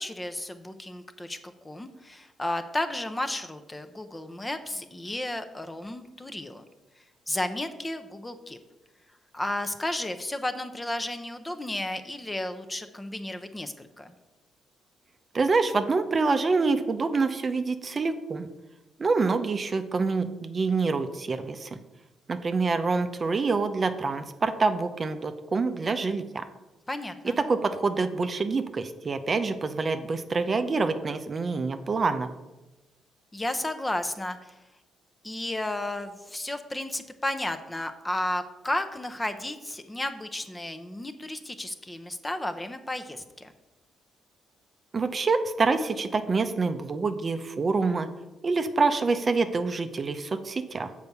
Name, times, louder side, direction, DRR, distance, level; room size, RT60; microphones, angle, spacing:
voice 1, 0.0-1.4 1.6-6.6 7.3-8.6 9.3-14.1 26.9-27.4 33.3-34.6 35.2-43.5, left 1 dB, 15° left, 8 dB, 0.7 m, -33 dB
voice 2, 15.3-18.5 19.0-21.8 22.3-26.4 27.2-32.3 44.9-48.1 48.4-50.9, right 4 dB, 35° right, 9 dB, 0.6 m, -26 dB
6.9 x 4.6 x 6.8 m, 1.1 s
cardioid pair, 90°, 0 cm